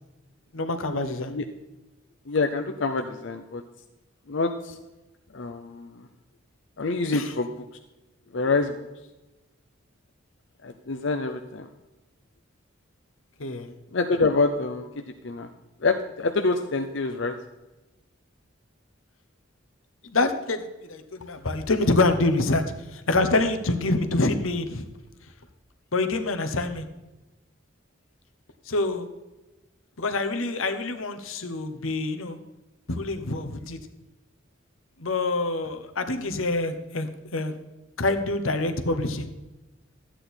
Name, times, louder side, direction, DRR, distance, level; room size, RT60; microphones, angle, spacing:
voice 1, 0.5-1.3 7.1-7.3 13.4-13.7 20.0-22.6 22.9-24.8 25.9-26.9 28.7-29.1 30.0-32.4 32.9-33.8 35.0-37.5 38.0-39.3, left 2 dB, 90° left, 8 dB, 1.1 m, -26 dB
voice 2, 2.3-3.6 4.3-4.8 5.3-6.1 6.8-7.5 8.3-8.8 10.6-11.7 13.9-14.9 15.2-15.5 15.8-17.4, left 3 dB, 65° left, 5 dB, 0.6 m, -26 dB
12.5 x 8.9 x 4.4 m, 1.1 s
head